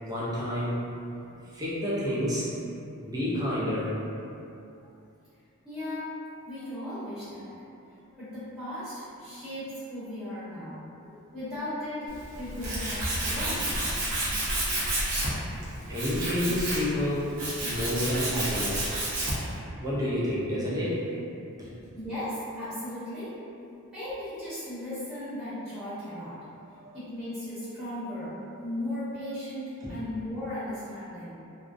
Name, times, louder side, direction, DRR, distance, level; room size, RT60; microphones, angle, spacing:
voice 1, 0.0-0.8 1.5-2.5 3.0-3.9 15.9-18.9 19.5-21.0 21.6-21.7 26.8-27.0 29.8-30.0, left 1 dB, 15° right, -8 dB, 0.5 m, -29 dB
voice 2, 5.6-6.1 6.4-7.6 8.2-10.8 11.3-13.7 21.9-23.4 23.9-26.4 26.9-28.3 28.6-31.3, left 1 dB, ahead, -16 dB, 0.8 m, -36 dB
Tools, 12.1-19.5, right 1 dB, 55° right, 0.6 m, -30 dB
2.4 x 2.0 x 2.5 m, 2.7 s
head